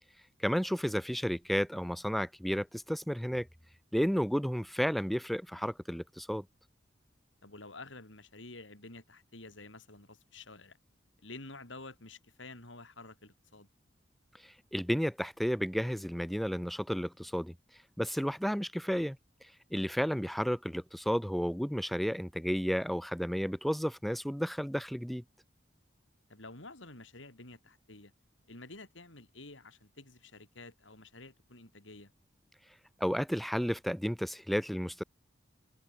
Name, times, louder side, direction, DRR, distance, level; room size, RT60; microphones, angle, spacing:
voice 1, 0.4-3.5 3.9-6.4 14.4-17.5 18.0-19.2 19.7-25.2 33.0-35.0, equal, ahead, 0.5 m, -32 dB
voice 2, 7.4-10.8 11.2-13.7 26.3-28.1 28.5-32.1, left 2 dB, 85° left, 7.0 m, -50 dB
head